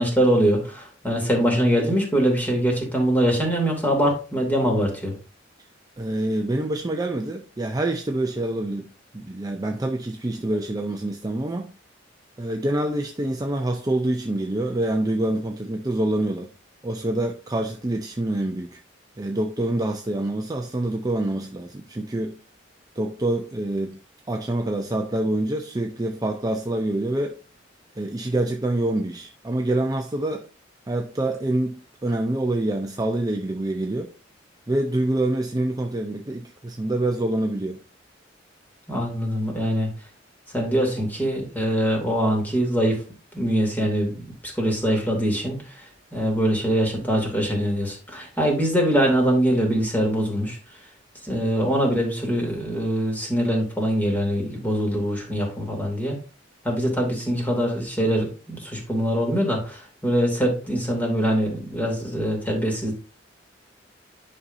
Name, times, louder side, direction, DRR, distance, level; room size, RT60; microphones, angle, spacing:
voice 1, 0.0-5.1 38.9-39.9 40.5-43.0 43.3-45.7 46.1-50.6 51.2-56.2 56.6-62.9, equal, 10° left, 2.5 m, -23 dB
voice 2, 6.0-8.9 9.1-11.7 12.4-16.5 16.8-18.8 19.2-22.4 23.0-24.0 24.3-27.4 28.0-30.4 30.9-34.1 34.7-37.8, right 1 dB, 20° right, 0.5 m, -26 dB
10.0 x 5.5 x 2.6 m
head